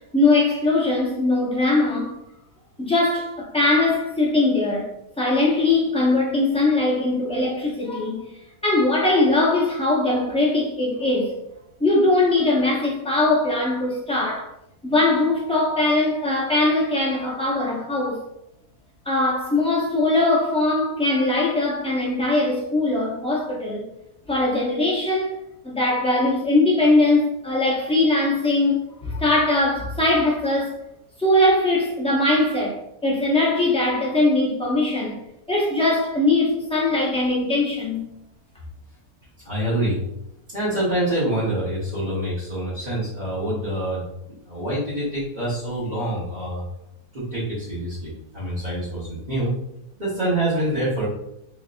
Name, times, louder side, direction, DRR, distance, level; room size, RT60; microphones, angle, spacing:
voice 1, 0.1-2.2 2.8-4.9 5.2-8.2 8.6-11.3 11.8-14.5 14.8-18.2 19.1-23.9 24.3-25.4 25.6-30.8 31.2-32.8 33.0-35.2 35.5-38.1, left 2 dB, 5° left, 0.5 m, -21 dB
voice 2, 39.4-40.0 40.5-46.6 47.1-49.5 50.0-51.1, right 1 dB, 30° right, 1.2 m, -26 dB
3.7 x 3.3 x 2.5 m
omnidirectional pair, 1.6 m